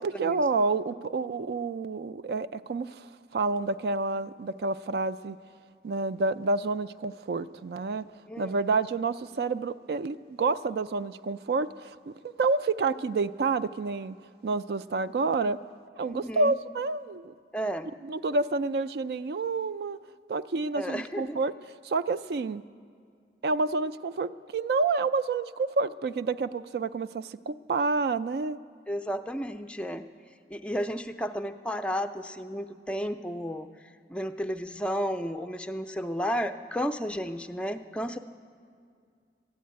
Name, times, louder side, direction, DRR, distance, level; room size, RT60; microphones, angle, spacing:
voice 1, 0.0-5.4 5.8-8.1 8.4-12.1 12.4-14.2 14.4-15.6 15.9-17.3 18.0-20.0 20.3-21.5 21.8-22.6 23.4-28.6, right 3 dB, 60° right, 15 dB, 0.3 m, -29 dB
voice 2, 8.3-8.6 16.0-16.5 17.5-17.9 20.7-21.4 28.9-30.0 30.5-33.7 34.1-38.2, equal, 5° left, 7 dB, 0.4 m, -32 dB
13.0 x 9.4 x 9.3 m, 2.2 s
head